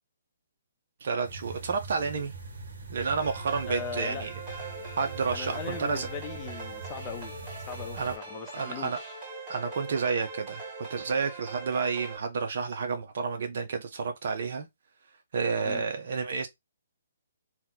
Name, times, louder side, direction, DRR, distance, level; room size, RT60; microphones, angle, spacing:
voice 1, 1.0-2.3 2.9-4.3 5.0-6.1 8.0-8.1 8.5-9.0 9.5-14.7 15.3-16.5, right 5 dB, 60° right, 0.6 m, -30 dB
sound 1, 1.2-8.2, right 3 dB, 75° right, 1.1 m, -42 dB
sound 2, 3.0-12.2, right 4 dB, 30° right, 1.6 m, -42 dB
voice 2, 3.7-4.3 5.3-7.3 7.7-9.2 15.6-15.8, left 6 dB, 20° left, 0.5 m, -39 dB
2.8 x 2.2 x 3.9 m
hypercardioid pair, 150°, 0 cm